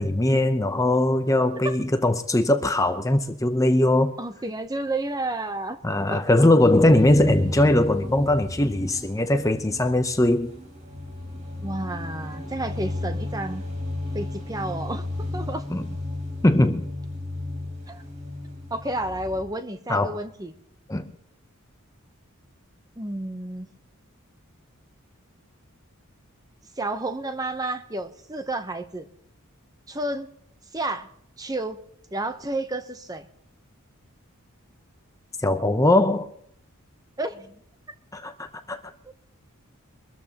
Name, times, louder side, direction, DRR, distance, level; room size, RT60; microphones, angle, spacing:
voice 1, 0.0-4.1 5.8-10.5 15.7-15.8 16.4-16.9 19.9-20.2 20.9-21.1 35.4-36.3 38.1-38.3 38.7-38.8, left 1 dB, 15° left, 0.7 m, -20 dB
voice 2, 4.2-5.8 6.1-6.5 11.6-13.6 14.1-15.7 17.9-18.0 18.7-20.5 23.0-23.7 26.8-29.1 29.9-30.3 30.7-31.1 31.4-31.8 32.1-33.3 37.2-37.6 39.0-39.1, right 2 dB, 15° right, 0.8 m, -31 dB
sound 1, 6.6-19.4, left 2 dB, 35° right, 3.7 m, -34 dB
24.0 x 13.5 x 2.9 m
head